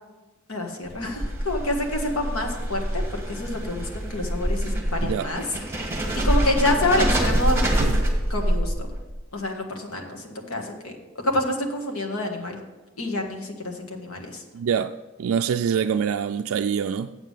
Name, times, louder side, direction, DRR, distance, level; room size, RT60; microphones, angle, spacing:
voice 1, 0.5-5.4 5.7-7.6 8.3-8.7 9.3-12.6 13.0-14.4, left 1 dB, 90° left, 3 dB, 1.5 m, -28 dB
sound 1, 0.9-9.2, right 1 dB, 10° right, 1.4 m, -25 dB
voice 2, 14.5-14.9 15.2-17.2, right 7 dB, 75° right, 7 dB, 0.3 m, -25 dB
8.1 x 7.3 x 5.6 m, 1.2 s
head